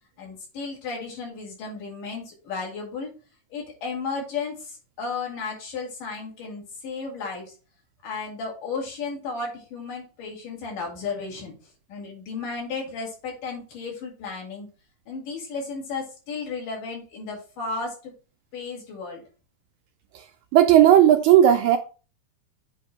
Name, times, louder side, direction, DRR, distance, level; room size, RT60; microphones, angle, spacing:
voice 1, 0.2-3.1 3.5-7.5 8.0-11.5 11.9-14.7 15.1-18.1 18.5-19.2, left 4 dB, 75° left, 3.9 m, -34 dB
voice 2, 20.5-21.8, right 11 dB, 80° right, 1.8 m, -15 dB
8.2 x 3.0 x 5.1 m
omnidirectional pair, 3.8 m